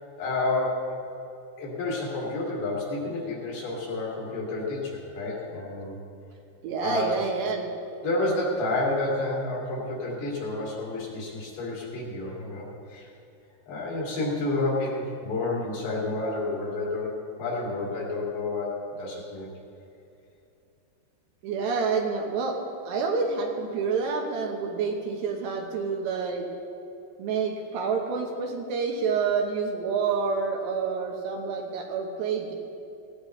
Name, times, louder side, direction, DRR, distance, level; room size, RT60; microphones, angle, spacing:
voice 1, 0.2-0.9 1.6-6.0 6.8-7.1 8.0-13.1 13.7-19.5, left 2 dB, 65° left, -4 dB, 4.4 m, -30 dB
voice 2, 6.6-7.7 21.4-22.6 22.8-26.4 27.2-32.5, right 5 dB, 75° right, 2 dB, 3.1 m, -28 dB
17.0 x 16.5 x 3.2 m, 2.7 s
omnidirectional pair, 5.4 m